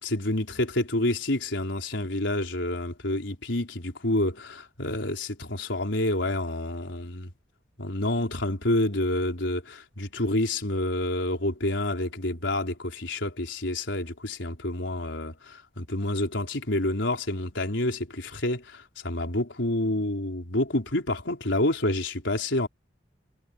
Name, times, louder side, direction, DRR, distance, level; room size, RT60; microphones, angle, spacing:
voice 1, 0.0-7.3 7.8-22.7, left 1 dB, 85° left, 4.3 m, -28 dB
head